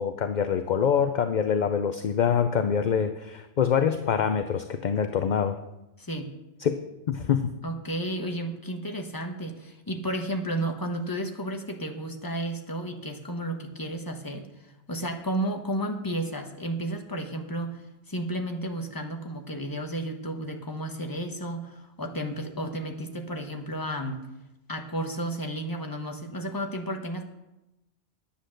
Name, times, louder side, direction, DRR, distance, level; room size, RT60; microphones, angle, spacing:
voice 1, 0.0-5.6 6.6-6.8 7.1-7.4, left 7 dB, 50° left, 8 dB, 0.6 m, -25 dB
voice 2, 6.0-6.3 7.6-17.8 18.1-24.2 24.7-27.2, right 1 dB, 20° left, 4 dB, 1.1 m, -32 dB
10.0 x 8.7 x 6.4 m, 0.94 s
omnidirectional pair, 1.2 m